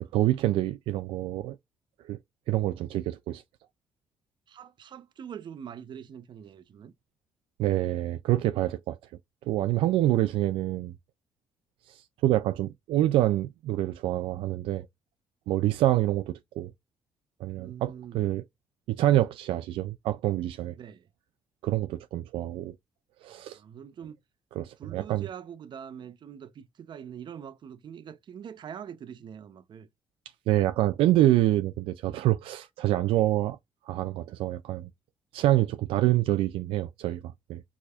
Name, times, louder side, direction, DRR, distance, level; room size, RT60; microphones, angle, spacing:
voice 1, 0.1-1.6 2.0-2.2 2.5-3.4 7.6-9.0 9.5-10.9 11.9-14.9 15.5-16.7 17.4-18.4 18.9-20.7 21.6-22.7 23.2-23.6 24.6-25.2 30.5-33.6 33.9-34.9 35.3-37.6, right 14 dB, 85° right, 0.4 m, -26 dB
voice 2, 4.5-6.9 17.6-18.2 20.7-21.1 23.4-24.2 24.8-29.9, right 8 dB, 60° right, 0.7 m, -44 dB
4.7 x 4.1 x 2.4 m
supercardioid pair, 70°, 9 cm